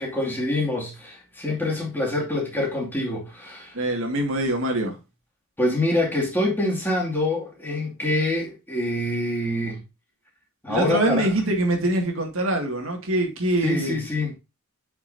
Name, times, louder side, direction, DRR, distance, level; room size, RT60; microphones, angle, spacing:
voice 1, 0.0-3.8 5.6-9.8 10.6-11.3 13.6-14.3, left 1 dB, 10° left, 2.4 m, -25 dB
voice 2, 3.7-5.0 10.7-14.0, right 1 dB, 65° right, 2.2 m, -24 dB
7.9 x 5.8 x 2.7 m
head